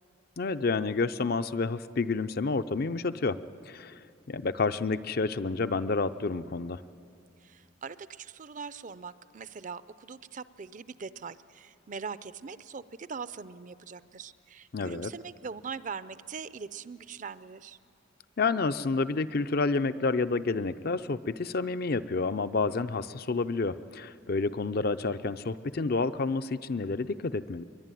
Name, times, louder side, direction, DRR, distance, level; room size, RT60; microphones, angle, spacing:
voice 1, 0.4-3.4 3.7-4.0 4.3-6.8 14.7-15.1 18.4-27.6, left 3 dB, 50° left, 12 dB, 0.6 m, -29 dB
voice 2, 7.4-17.8, right 5 dB, 40° right, 15 dB, 0.5 m, -41 dB
22.5 x 22.0 x 9.2 m, 2.5 s
head